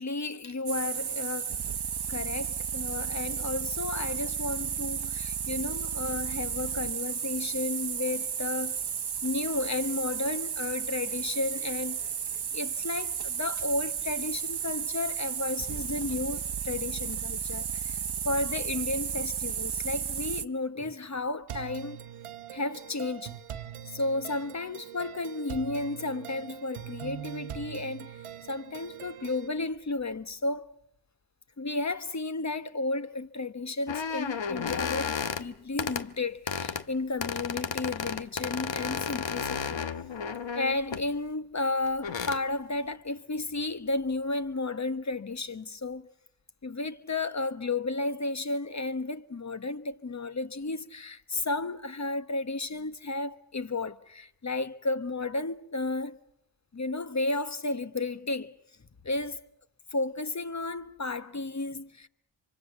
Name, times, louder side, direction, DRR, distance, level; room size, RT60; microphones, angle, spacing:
voice 1, 0.0-1.6 2.1-8.8 9.2-12.0 12.5-22.0 22.5-23.4 23.9-30.7 31.6-39.8 40.5-46.1 46.6-56.2 56.7-58.5 59.0-59.4 59.9-62.1, left 2 dB, 35° left, 1.3 m, -33 dB
sound 1, 0.7-20.5, right 8 dB, 50° right, 0.9 m, -33 dB
sound 2, 21.5-29.5, right 10 dB, 85° right, 1.0 m, -42 dB
sound 3, 33.9-35.4 35.8-36.0 36.5-36.8 37.2-41.1 41.9-42.4, left 6 dB, 65° left, 1.2 m, -33 dB
25.5 x 25.0 x 7.1 m
cardioid pair, 40°, 49 cm